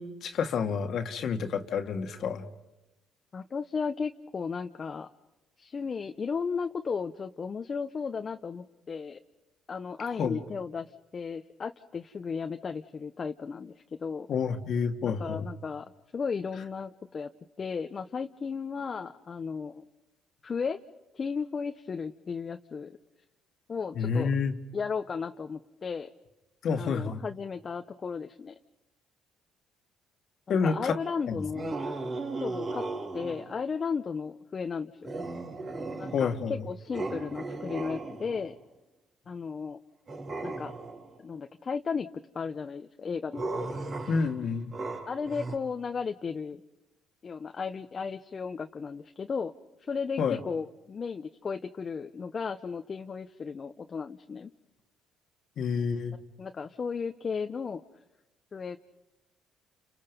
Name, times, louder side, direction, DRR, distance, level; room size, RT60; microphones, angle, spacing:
voice 1, 0.0-2.5 10.2-10.4 14.3-15.4 24.0-24.5 26.6-27.2 30.5-31.0 31.3-31.4 36.1-36.6 44.1-44.7 50.2-50.4 55.6-56.2, left 5 dB, 60° left, 6 dB, 1.9 m, -29 dB
voice 2, 3.3-5.1 5.6-9.2 9.7-13.7 14.0-14.3 15.0-15.9 16.1-17.3 17.6-19.8 20.4-20.8 21.1-23.0 23.7-24.3 24.7-26.1 26.8-28.5 30.5-31.7 32.4-32.8 33.1-34.9 36.0-38.5 39.3-39.8 40.4-40.7 41.2-42.1 42.3-43.5 45.1-46.6 47.2-49.5 49.9-54.5 56.4-57.8 58.5-58.8, left 5 dB, 40° left, 7 dB, 0.9 m, -34 dB
sound 1, 31.5-33.6 35.0-36.5 36.9-38.6 40.1-41.2 43.3-45.6, right 3 dB, 45° right, 4.6 m, -36 dB
29.5 x 29.0 x 5.4 m, 1.0 s
supercardioid pair, 70°, 0 cm